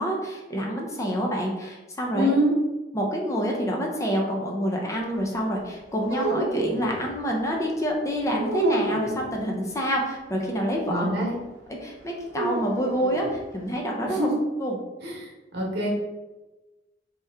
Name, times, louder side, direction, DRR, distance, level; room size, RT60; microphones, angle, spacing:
voice 1, 0.0-2.4 2.9-11.1 11.7-14.3 14.6-14.8, equal, 15° left, -1 dB, 0.5 m, -27 dB
voice 2, 2.1-2.5 10.9-11.3 14.1-14.3 15.0-15.9, equal, 65° right, -2 dB, 1.1 m, -26 dB
sound 1, 6.0-7.1 8.4-9.3 12.3-13.4, right 2 dB, 90° right, 0.7 m, -28 dB
3.3 x 2.9 x 3.4 m, 1.1 s
head